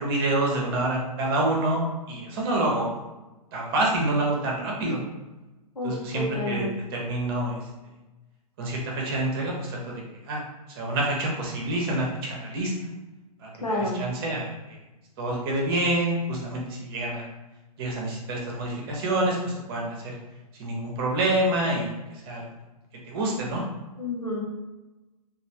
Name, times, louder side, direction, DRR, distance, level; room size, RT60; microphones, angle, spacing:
voice 1, 0.0-2.9 3.5-5.0 5.8-7.7 8.6-10.4 10.7-12.7 13.4-14.8 15.2-17.3 17.8-20.1 20.6-22.4 23.1-23.6, right 1 dB, 40° right, -2 dB, 0.8 m, -27 dB
voice 2, 5.8-6.8 13.6-14.0 24.0-24.4, left 1 dB, 75° left, -2 dB, 0.9 m, -29 dB
3.1 x 2.4 x 2.8 m, 1.1 s
figure-of-eight pair, 110°, 20 cm